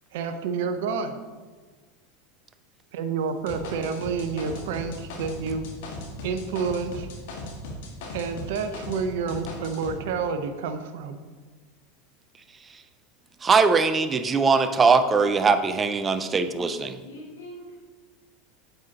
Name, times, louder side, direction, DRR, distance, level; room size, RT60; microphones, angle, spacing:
voice 1, 0.1-1.2 2.9-5.7 6.2-7.1 8.1-11.2, right 5 dB, 65° right, 8 dB, 0.7 m, -29 dB
sound 1, 3.5-9.0 9.3-9.9, left 1 dB, 65° left, 1.8 m, -37 dB
voice 2, 13.4-17.0, right 4 dB, 25° right, 10 dB, 0.6 m, -21 dB
voice 3, 15.1-15.5 17.0-17.8, left 1 dB, 80° left, -5 dB, 2.7 m, -42 dB
9.3 x 7.9 x 2.9 m, 1.4 s
hypercardioid pair, 85°, 0 cm